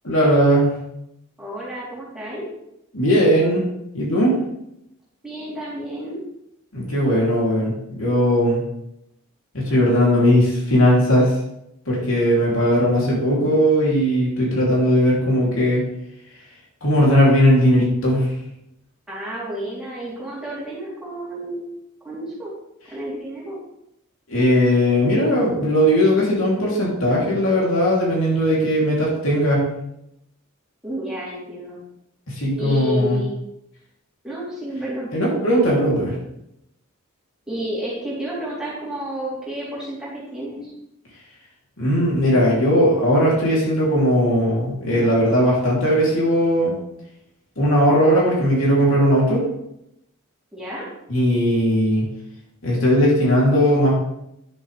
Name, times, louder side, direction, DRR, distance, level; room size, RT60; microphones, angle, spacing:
voice 1, 0.0-0.8 2.9-3.6 3.9-4.4 6.7-8.6 9.5-11.3 11.9-15.8 16.8-18.3 24.3-29.7 32.3-33.2 35.1-36.1 41.8-46.7 47.6-49.4 51.1-52.1 52.6-53.9, equal, 65° left, -5 dB, 3.1 m, -18 dB
voice 2, 1.4-2.4 5.2-6.2 19.1-21.7 22.0-22.5 22.9-23.6 30.8-31.8 32.6-33.3 34.2-35.1 37.5-40.7 50.5-50.8, equal, 5° right, -9 dB, 3.4 m, -30 dB
10.0 x 7.6 x 3.4 m, 0.82 s
head